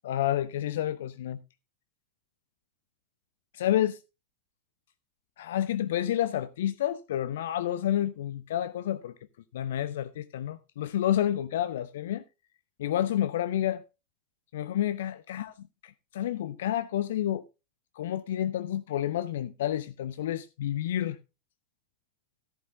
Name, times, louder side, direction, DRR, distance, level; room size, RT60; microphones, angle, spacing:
voice 1, 0.0-1.4 3.5-4.0 5.4-9.1 9.5-12.2 12.8-13.8 14.5-15.5 15.8-17.4 17.9-21.2, left 11 dB, 60° left, 0.5 m, -29 dB
14.0 x 12.5 x 2.2 m
figure-of-eight pair, 90°, 0 cm